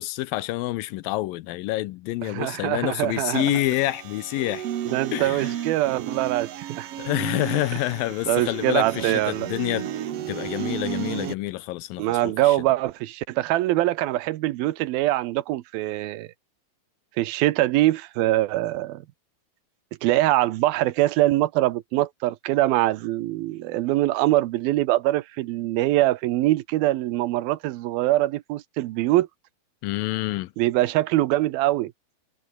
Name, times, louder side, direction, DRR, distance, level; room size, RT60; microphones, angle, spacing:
voice 1, 0.0-4.7 5.1-5.5 7.0-9.9 10.3-12.6 29.8-30.5, left 17 dB, 80° left, 2.3 m, -27 dB
voice 2, 2.2-3.5 4.9-6.9 8.3-9.5 12.0-16.3 17.2-19.0 20.0-29.3 30.6-31.9, right 16 dB, 80° right, 2.7 m, -23 dB
sound 1, 3.3-11.3, right 10 dB, 60° right, 1.7 m, -33 dB
omnidirectional pair, 4.3 m